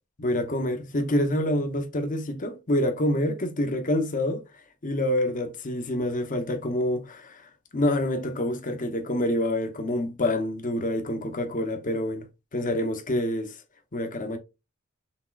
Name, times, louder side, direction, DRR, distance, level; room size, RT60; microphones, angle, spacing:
voice 1, 0.2-4.4 4.8-12.3 12.5-13.6 13.9-14.4, left 1 dB, 40° left, 0.9 m, -27 dB
6.0 x 3.6 x 2.4 m
head